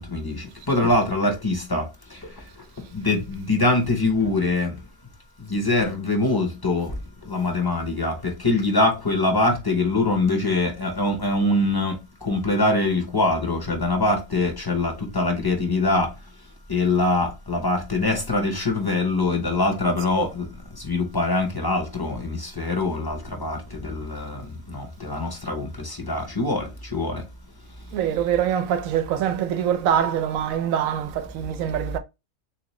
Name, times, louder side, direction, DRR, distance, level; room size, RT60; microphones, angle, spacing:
voice 1, 0.0-1.8 2.9-4.7 5.5-6.9 7.3-11.9 12.2-16.1 16.7-20.5 20.9-24.4 24.7-27.2, left 2 dB, 25° left, 0.6 m, -23 dB
voice 2, 27.9-32.0, right 9 dB, 90° right, 1.0 m, -24 dB
3.6 x 2.9 x 3.0 m
omnidirectional pair, 1.4 m